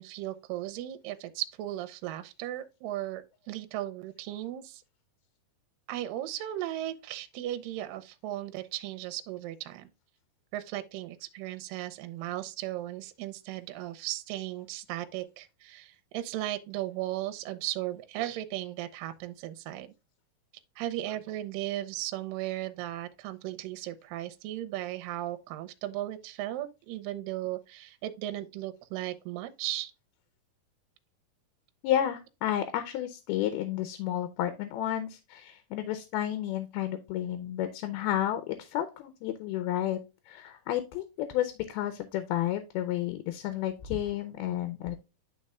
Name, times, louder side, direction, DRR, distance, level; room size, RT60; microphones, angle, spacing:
voice 1, 0.0-4.8 5.9-9.9 10.5-19.9 20.8-29.9, right 14 dB, 80° right, 2.2 m, -36 dB
voice 2, 31.8-40.0 40.3-45.0, left 12 dB, 90° left, 2.6 m, -31 dB
11.5 x 4.2 x 2.3 m
omnidirectional pair, 4.3 m